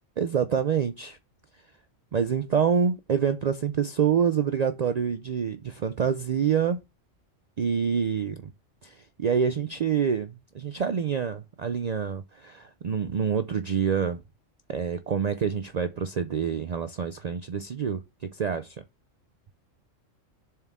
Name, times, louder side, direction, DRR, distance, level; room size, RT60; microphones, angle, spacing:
voice 1, 0.2-1.2 2.1-6.8 7.6-8.5 8.8-14.2 14.7-18.8, right 7 dB, 90° right, 0.3 m, -27 dB
7.1 x 4.4 x 3.5 m
omnidirectional pair, 1.3 m